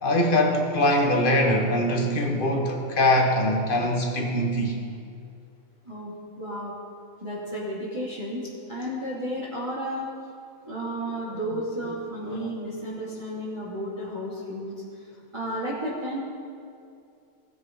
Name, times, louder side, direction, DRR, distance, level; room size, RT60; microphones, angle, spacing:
voice 1, 0.0-4.8 12.2-12.4, left 1 dB, 35° left, 2 dB, 1.5 m, -22 dB
voice 2, 5.8-6.7 7.2-10.1 10.7-14.7 15.3-16.2, equal, 20° right, -10 dB, 2.7 m, -32 dB
18.0 x 7.0 x 5.5 m, 2.4 s
omnidirectional pair, 1.6 m